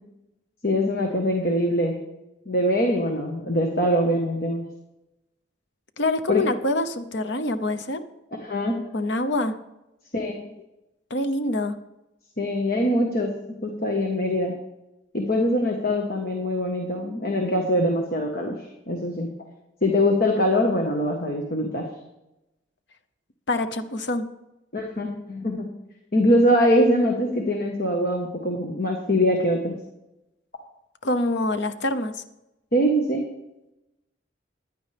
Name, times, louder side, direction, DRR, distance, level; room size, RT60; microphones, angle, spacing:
voice 1, 0.6-2.0 2.5-4.6 6.3-6.4 8.4-8.8 10.1-10.5 12.4-13.3 13.6-14.5 15.1-19.3 19.8-21.9 24.7-25.7 26.1-29.7 32.7-33.2, equal, 50° left, 1 dB, 1.4 m, -23 dB
voice 2, 6.0-8.0 8.9-9.5 11.1-11.8 23.5-24.3 31.0-32.1, left 2 dB, 70° left, 10 dB, 0.9 m, -25 dB
15.5 x 10.5 x 3.5 m, 0.93 s
head